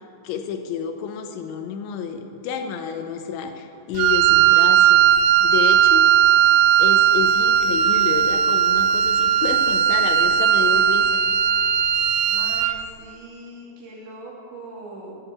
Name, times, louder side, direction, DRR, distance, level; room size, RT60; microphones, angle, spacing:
voice 1, 0.2-5.1 5.4-6.5 6.8-11.2, left 7 dB, 80° left, 6 dB, 2.9 m, -30 dB
Wind instrument woodwind instrument, 4.0-12.8, right 9 dB, 85° right, 2.7 m, -17 dB
voice 2, 5.9-6.2 12.2-15.1, right 1 dB, 65° right, -4 dB, 4.7 m, -41 dB
14.5 x 10.0 x 8.3 m, 2.5 s
omnidirectional pair, 5.9 m